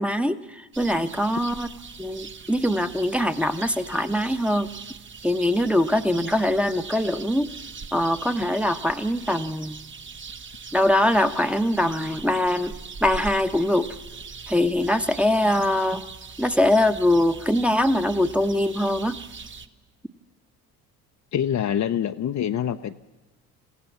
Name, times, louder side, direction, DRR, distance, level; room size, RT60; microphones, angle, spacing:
voice 1, 0.0-1.7 2.0-4.7 5.2-7.5 7.9-9.8 10.7-12.7 13.0-13.9 14.5-16.0 16.4-19.2, left 1 dB, 5° right, 7 dB, 1.1 m, -22 dB
sound 1, 0.7-19.7, right 5 dB, 25° right, 1.1 m, -41 dB
voice 2, 21.3-22.9, left 9 dB, 40° left, 8 dB, 0.8 m, -25 dB
28.0 x 16.0 x 7.2 m, 1.2 s
hypercardioid pair, 60°, 43 cm